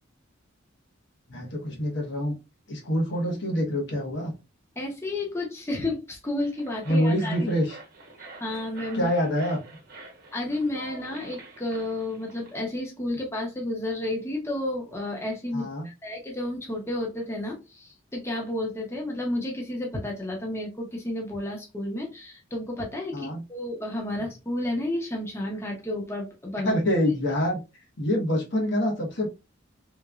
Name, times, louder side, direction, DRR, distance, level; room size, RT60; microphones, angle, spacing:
voice 1, 1.3-2.3 2.7-4.3 6.9-7.8 8.9-9.6 15.5-15.9 23.1-23.4 26.6-27.6 28.0-29.3, equal, 65° left, 1 dB, 1.1 m, -26 dB
voice 2, 4.8-7.4 8.2-9.1 10.3-26.7, left 1 dB, 15° left, -1 dB, 0.8 m, -31 dB
sound 1, 6.3-12.5, right 2 dB, 50° right, 0.9 m, -46 dB
3.5 x 3.0 x 2.4 m, 0.26 s
head